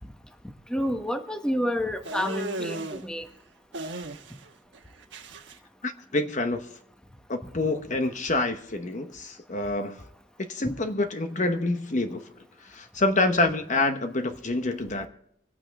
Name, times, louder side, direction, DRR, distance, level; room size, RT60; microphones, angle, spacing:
voice 1, 0.7-3.2, equal, 5° left, 6 dB, 1.1 m, -29 dB
sound 1, 2.0-3.0 3.7-4.5 4.7-5.5, right 2 dB, 70° right, 1.2 m, -35 dB
voice 2, 5.8-6.7 7.3-10.0 10.4-12.2 12.6-15.1, left 2 dB, 40° left, 7 dB, 1.0 m, -27 dB
25.0 x 9.0 x 3.5 m, 0.76 s
head